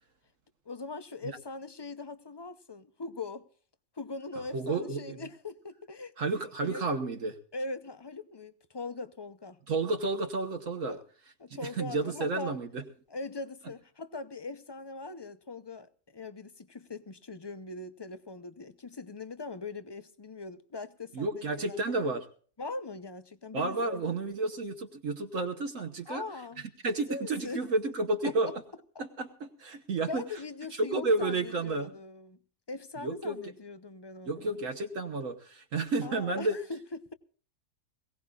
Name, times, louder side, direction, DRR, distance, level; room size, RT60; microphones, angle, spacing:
voice 1, 0.7-3.5 3.9-6.1 6.6-6.8 7.5-9.6 10.9-11.0 11.4-12.5 13.1-21.9 22.6-24.2 26.1-26.7 27.1-27.7 28.2-28.5 30.0-32.4 32.7-34.6 36.0-37.1, left 3 dB, 30° left, 0.5 m, -41 dB
voice 2, 4.5-5.2 6.2-7.4 9.7-11.0 11.5-12.8 21.1-22.3 23.5-26.2 26.8-28.5 29.0-30.2 30.8-31.9 33.0-33.4 34.3-36.6, right 3 dB, 70° right, 1.5 m, -31 dB
22.0 x 17.5 x 2.4 m
omnidirectional pair, 1.4 m